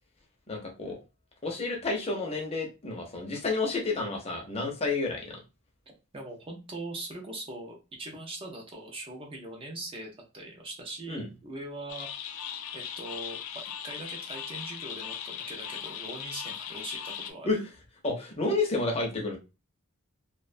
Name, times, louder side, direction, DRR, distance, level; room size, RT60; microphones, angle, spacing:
voice 1, 0.5-1.0 1.4-5.4 11.1-11.3 17.4-17.6 18.0-19.4, left 3 dB, 30° left, 0 dB, 0.6 m, -30 dB
voice 2, 6.1-12.1 12.7-17.5, right 2 dB, 25° right, 1 dB, 0.4 m, -41 dB
sound 1, 11.9-17.3, left 8 dB, 80° left, 0.4 m, -38 dB
2.4 x 2.1 x 2.5 m, 0.29 s
head